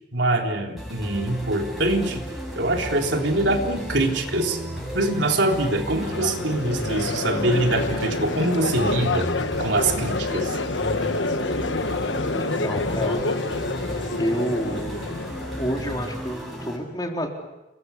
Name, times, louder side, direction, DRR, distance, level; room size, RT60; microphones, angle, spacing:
voice 1, 0.1-2.2 2.6-4.6 4.9-9.3 9.6-10.6, right 2 dB, 75° right, 2 dB, 3.6 m, -24 dB
sound 1, 0.8-16.8, equal, ahead, 7.8 m, -34 dB
Crowd, 6.0-16.2, left 3 dB, 90° left, 1.3 m, -28 dB
voice 2, 12.4-13.2 14.2-15.0 15.6-17.5, equal, 20° left, 2 dB, 3.7 m, -29 dB
29.5 x 22.5 x 8.4 m, 1.0 s
head